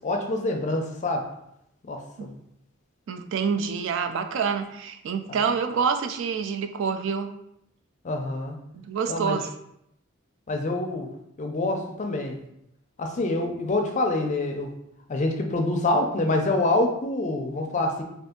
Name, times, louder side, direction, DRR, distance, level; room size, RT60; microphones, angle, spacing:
voice 1, 0.0-1.3 1.9-2.4 5.3-5.4 8.0-8.6 9.1-9.4 10.5-11.1 11.4-12.4 13.0-14.7 15.1-18.0, left 2 dB, 35° left, 3 dB, 0.4 m, -26 dB
voice 2, 3.1-7.3 8.9-9.5, right 6 dB, 65° right, 8 dB, 0.3 m, -27 dB
2.6 x 2.5 x 3.6 m, 0.77 s
head